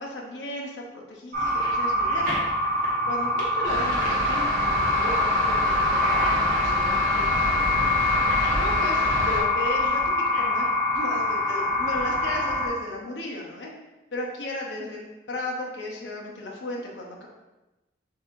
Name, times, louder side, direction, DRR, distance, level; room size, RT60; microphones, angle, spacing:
voice 1, 0.0-2.4 3.0-7.3 8.5-10.0 10.4-10.7 10.9-13.7 14.1-17.3, left 1 dB, 75° left, -1 dB, 0.8 m, -35 dB
sound 1, 1.3-12.7, left 2 dB, 45° right, 1.2 m, -24 dB
sound 2, 3.6-9.4, right 1 dB, 90° right, 1.3 m, -29 dB
6.4 x 2.8 x 2.5 m, 1.1 s
head